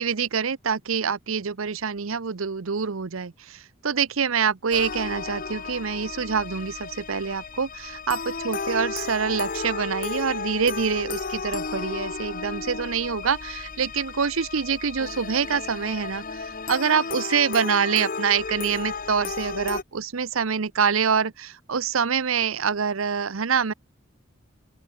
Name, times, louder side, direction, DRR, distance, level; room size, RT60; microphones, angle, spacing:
voice 1, 0.0-23.7, right 6 dB, 80° right, 0.8 m, -26 dB
sound 1, 4.7-19.8, left 4 dB, 40° left, 1.2 m, -33 dB
open air
head